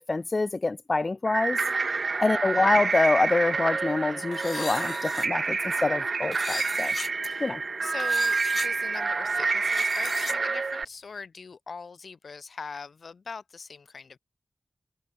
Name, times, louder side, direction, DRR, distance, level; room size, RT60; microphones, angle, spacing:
voice 1, 0.0-1.6 2.2-6.9 7.4-7.6, left 3 dB, 40° left, 0.7 m, -26 dB
sound 1, 1.3-10.9, right 4 dB, 65° right, 1.7 m, -28 dB
sound 2, 4.3-5.3 6.3-7.1 8.0-8.7 9.5-10.3, left 4 dB, 60° left, 4.4 m, -37 dB
voice 2, 7.8-14.2, left 5 dB, 80° left, 3.9 m, -41 dB
wide cardioid pair, 100°, 0 cm